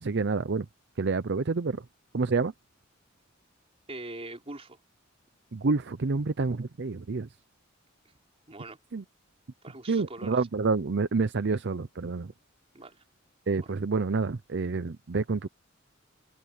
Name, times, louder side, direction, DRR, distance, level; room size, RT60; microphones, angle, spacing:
voice 1, 0.0-0.7 1.0-1.8 2.1-2.5 5.5-7.3 8.9-9.0 9.9-12.3 13.5-15.5, right 4 dB, 60° right, 0.6 m, -28 dB
voice 2, 3.9-4.8 8.0-8.1 8.5-8.8 9.6-10.4 12.7-13.0 13.6-13.7, right 2 dB, 30° right, 4.3 m, -42 dB
head